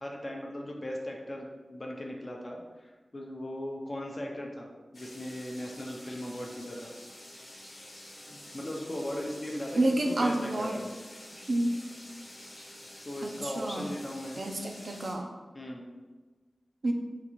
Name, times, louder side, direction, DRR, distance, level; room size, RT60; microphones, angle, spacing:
voice 1, 0.0-6.9 8.3-10.9 13.0-14.4 15.5-15.9, left 1 dB, 35° left, -1 dB, 0.5 m, -38 dB
sound 1, 4.9-15.1, left 1 dB, 55° left, 0.9 m, -48 dB
voice 2, 9.7-10.8 11.5-11.7 13.2-13.8 14.4-15.3 16.8-16.9, right 1 dB, 70° right, 2 dB, 0.4 m, -29 dB
3.6 x 2.4 x 3.0 m, 1.3 s
wide cardioid pair, 90°, 0 cm